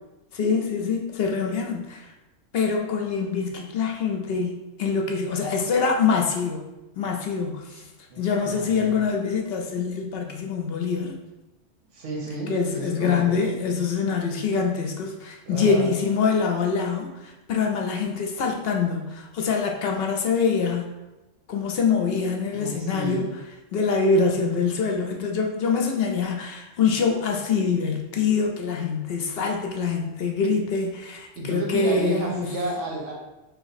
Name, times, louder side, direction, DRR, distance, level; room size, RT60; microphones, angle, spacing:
voice 1, 0.3-2.1 2.5-6.6 7.0-7.8 8.2-11.2 12.5-20.9 21.5-23.4 23.7-32.5, left 5 dB, 65° left, 2 dB, 0.7 m, -25 dB
voice 2, 8.1-9.0 11.9-13.4 15.5-15.9 22.5-23.3 31.3-33.1, right 1 dB, 80° right, -2 dB, 1.3 m, -31 dB
3.1 x 2.9 x 4.0 m, 1.0 s
omnidirectional pair, 1.3 m